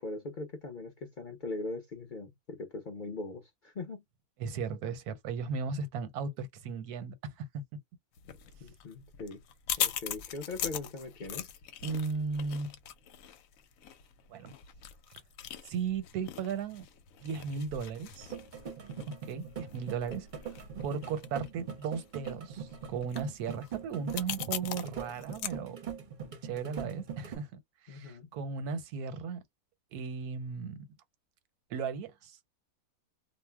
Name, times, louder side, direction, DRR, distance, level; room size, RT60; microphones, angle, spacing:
voice 1, 0.0-4.0 8.6-9.4 9.8-11.5 27.9-28.3, left 3 dB, 50° left, 0.6 m, -40 dB
voice 2, 4.4-7.5 11.8-12.7 14.3-14.5 15.6-16.9 17.2-18.3 19.2-20.3 20.8-26.0 26.4-29.4 29.9-30.9 31.7-32.5, right 5 dB, 90° right, 1.2 m, -36 dB
sound 1, 8.2-25.5, left 10 dB, 70° left, 0.9 m, -41 dB
sound 2, 18.2-27.4, right 8 dB, 50° right, 0.6 m, -42 dB
2.5 x 2.0 x 3.3 m
omnidirectional pair, 1.6 m